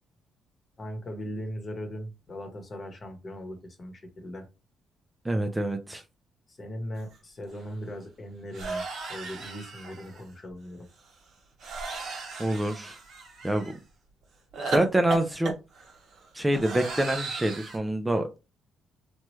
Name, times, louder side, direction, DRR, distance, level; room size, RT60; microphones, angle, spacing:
voice 1, 0.8-4.5 6.5-8.8 9.1-10.9, equal, 35° left, 5 dB, 1.0 m, -39 dB
voice 2, 5.2-6.0 12.4-13.0 13.4-13.8 14.7-15.5 16.3-18.3, right 1 dB, 10° right, 6 dB, 0.4 m, -26 dB
sound 1, 7.1-7.2 7.5-7.7 8.5-10.2 11.6-13.8 14.5-17.8, right 4 dB, 70° right, 1.0 m, -36 dB
3.0 x 2.2 x 3.1 m, 0.28 s
cardioid pair, 90°, 0 cm